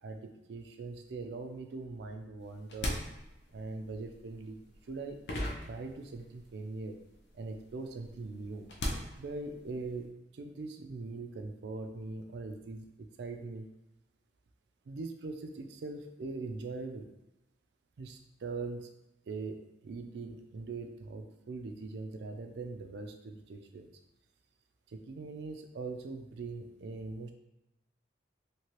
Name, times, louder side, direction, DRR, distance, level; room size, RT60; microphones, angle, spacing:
voice 1, 0.0-3.0 3.5-4.6 4.8-5.2 5.6-7.0 7.3-8.7 9.2-13.7 14.9-17.1 18.0-19.0 19.3-23.9 24.9-27.3, right 3 dB, 70° right, 6 dB, 0.4 m, -41 dB
sound 1, 2.4-6.5 6.8-10.0, left 1 dB, 70° left, 0.5 m, -39 dB
3.0 x 2.7 x 3.0 m, 0.94 s
head